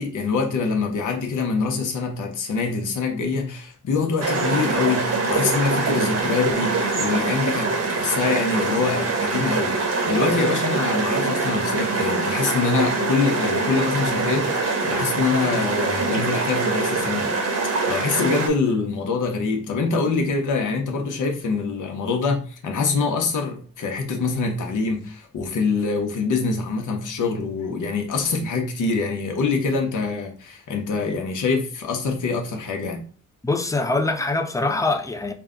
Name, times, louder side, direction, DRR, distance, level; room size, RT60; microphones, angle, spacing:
voice 1, 0.0-17.5 17.9-33.0, left 4 dB, 70° left, 1.0 m, -25 dB
sound 1, 4.2-18.5, right 3 dB, 55° right, 1.0 m, -24 dB
voice 2, 33.4-35.3, left 3 dB, 10° left, 0.5 m, -23 dB
4.6 x 2.2 x 3.7 m
cardioid pair, 85°, 31 cm